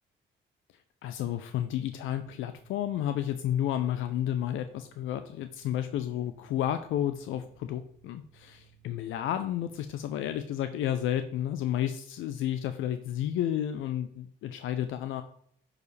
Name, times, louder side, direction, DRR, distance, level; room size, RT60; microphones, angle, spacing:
voice 1, 1.0-15.2, left 11 dB, 85° left, 9 dB, 0.5 m, -31 dB
sound 1, 1.8-10.3, right 5 dB, 40° left, 3.5 m, -61 dB
10.5 x 4.8 x 3.3 m, 0.64 s
cardioid pair, 90°, 20 cm